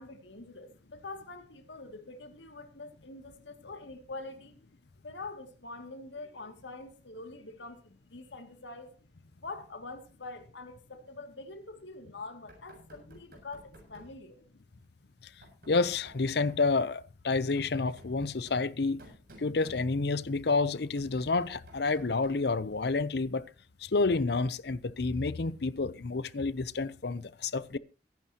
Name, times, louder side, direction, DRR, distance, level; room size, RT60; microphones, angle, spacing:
voice 1, 0.0-4.5 5.0-9.0 9.4-14.4, left 3 dB, 75° left, 2.4 m, -45 dB
Knock, 12.5-14.2 15.4-16.7 17.3-20.2 20.7-22.5, right 1 dB, 55° right, 7.6 m, -55 dB
voice 2, 15.7-19.0 19.4-23.4 23.8-27.8, left 3 dB, 60° left, 0.7 m, -29 dB
23.5 x 11.0 x 2.9 m
head